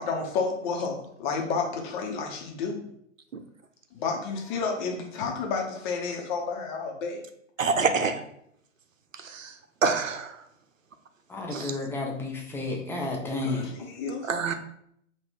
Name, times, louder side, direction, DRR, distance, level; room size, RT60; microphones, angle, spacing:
voice 1, 0.0-2.9 3.9-7.2 13.4-14.3, left 4 dB, 40° left, 2 dB, 1.1 m, -31 dB
voice 2, 7.6-8.2 9.2-9.5 9.8-10.4 11.5-11.8 14.2-14.5, right 4 dB, 90° right, 8 dB, 0.6 m, -26 dB
voice 3, 11.3-13.7, left 2 dB, 5° left, -1 dB, 0.6 m, -31 dB
3.8 x 2.6 x 4.7 m, 0.71 s
figure-of-eight pair, 110°, 38 cm